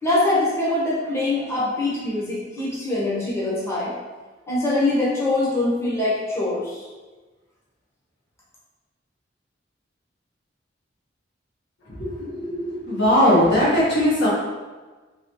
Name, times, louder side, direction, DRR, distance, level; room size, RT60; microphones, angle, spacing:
voice 1, 0.0-4.0 4.5-6.9, left 2 dB, 15° left, -8 dB, 0.9 m, -23 dB
voice 2, 12.0-14.3, equal, 65° left, -8 dB, 1.3 m, -19 dB
4.0 x 2.9 x 3.0 m, 1.3 s
head